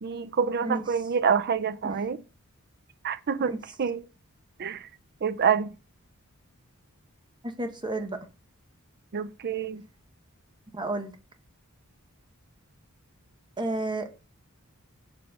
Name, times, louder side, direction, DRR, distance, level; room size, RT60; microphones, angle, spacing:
voice 1, 0.0-2.2 3.0-4.0 4.6-4.8 5.2-5.7 9.1-9.8, right 6 dB, 50° right, 0.5 m, -27 dB
voice 2, 7.4-8.2 10.7-11.1 13.6-14.1, right 2 dB, 20° right, 1.1 m, -31 dB
7.1 x 4.1 x 6.3 m
head